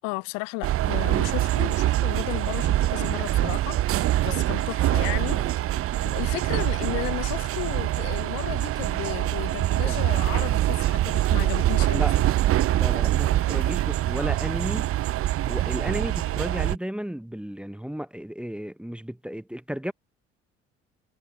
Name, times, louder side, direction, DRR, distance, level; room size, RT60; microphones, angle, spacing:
voice 1, 0.0-3.8 4.2-5.6 6.0-12.3, left 32 dB, 70° left, 0.5 m, -34 dB
sound 1, 0.6-16.8, right 14 dB, 45° right, 0.5 m, -24 dB
voice 2, 12.7-14.9 15.4-19.9, equal, 5° right, 0.7 m, -33 dB
hypercardioid pair, 55°, 33 cm